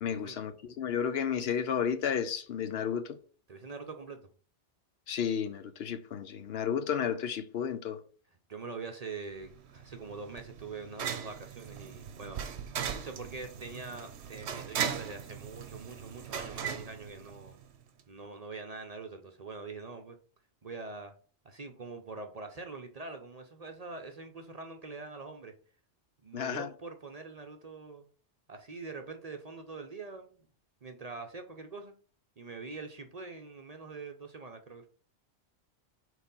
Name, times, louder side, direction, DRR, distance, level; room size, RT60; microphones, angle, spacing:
voice 1, 0.0-3.2 5.1-8.0 26.3-26.7, left 8 dB, 65° left, 0.8 m, -32 dB
voice 2, 3.5-4.3 8.5-12.4 12.9-17.5 18.1-20.2 20.6-21.1 21.4-25.5 26.2-28.0 28.5-30.4 30.8-31.9 32.4-34.9, right 4 dB, 40° right, 0.7 m, -44 dB
sound 1, 9.4-17.8, right 7 dB, 70° right, 1.0 m, -39 dB
4.5 x 4.1 x 5.4 m
omnidirectional pair, 1.2 m